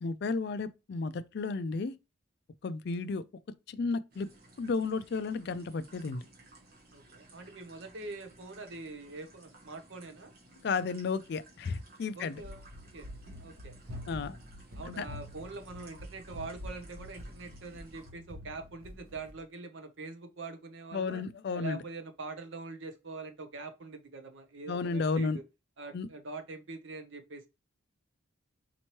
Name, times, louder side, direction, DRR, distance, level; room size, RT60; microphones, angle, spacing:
voice 1, 0.0-2.0 2.6-3.2 3.7-4.3 4.6-6.3 10.6-12.4 14.1-14.4 14.9-15.1 20.9-21.8 24.7-25.4 25.9-26.1, left 4 dB, 50° left, 0.3 m, -33 dB
sound 1, 4.1-18.1, right 2 dB, 45° right, 1.2 m, -58 dB
voice 2, 6.9-10.3 12.2-12.6 12.9-13.1 13.4-13.7 14.8-21.2 21.5-25.3 25.8-27.5, right 3 dB, 65° right, 0.7 m, -44 dB
Run, 12.4-19.4, left 1 dB, 80° right, 1.1 m, -46 dB
4.3 x 3.0 x 2.9 m
head